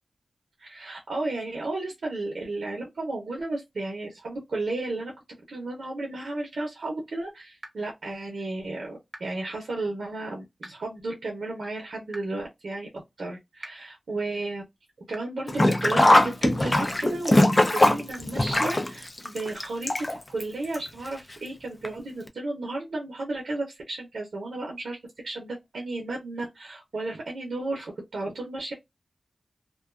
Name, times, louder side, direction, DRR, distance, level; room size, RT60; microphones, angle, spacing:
voice 1, 0.6-5.1 5.5-12.9 13.2-14.6 15.1-25.0 25.2-28.7, right 2 dB, 85° right, 0.6 m, -33 dB
sound 1, 7.6-7.7 9.1-9.2 10.6-10.7 12.1-12.2 13.6-13.7 15.1-15.2 16.6-16.7 18.1-18.2 19.6-19.7, right 1 dB, 35° right, 0.7 m, -40 dB
Sink (filling or washing), 15.5-20.4 20.7-20.8 21.8-21.9 22.3-22.4, left 1 dB, 40° left, 0.4 m, -21 dB
2.5 x 2.2 x 2.3 m
cardioid pair, 40°, 0 cm